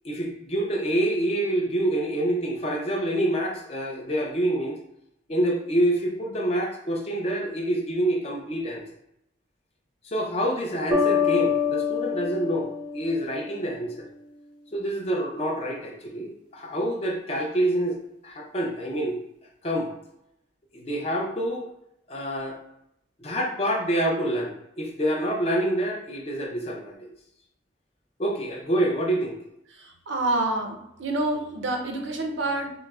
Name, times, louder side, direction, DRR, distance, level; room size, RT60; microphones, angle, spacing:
voice 1, 0.0-4.8 5.3-8.8 10.0-14.1 14.7-18.0 18.2-19.2 19.6-19.9 20.7-21.7 22.1-22.6 23.2-27.1 28.2-29.4, right 1 dB, 30° left, 1 dB, 0.5 m, -27 dB
sound 1, 10.9-13.7, left 7 dB, 25° right, 0.4 m, -26 dB
voice 2, 29.8-32.7, right 2 dB, 80° right, 4 dB, 0.6 m, -28 dB
4.6 x 2.0 x 2.3 m, 0.81 s
head